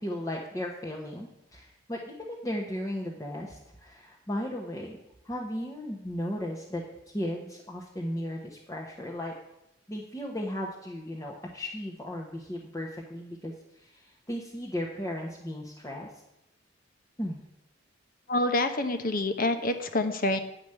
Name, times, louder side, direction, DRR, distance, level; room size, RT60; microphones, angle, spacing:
voice 1, 0.0-5.0 5.2-6.8 7.1-9.3 9.9-16.1 17.2-17.4, left 1 dB, 15° left, -3 dB, 1.1 m, -36 dB
voice 2, 18.3-20.4, left 2 dB, 50° left, 8 dB, 1.0 m, -27 dB
9.8 x 5.2 x 7.7 m, 0.84 s
head